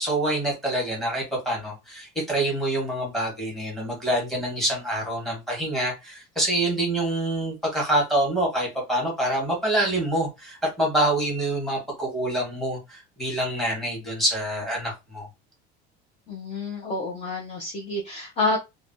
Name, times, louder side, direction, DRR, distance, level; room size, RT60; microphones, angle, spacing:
voice 1, 0.0-15.3, right 1 dB, ahead, 1.2 m, -26 dB
voice 2, 16.3-18.6, left 2 dB, 30° left, 0.6 m, -28 dB
3.0 x 2.2 x 2.6 m
cardioid pair, 160°, 21 cm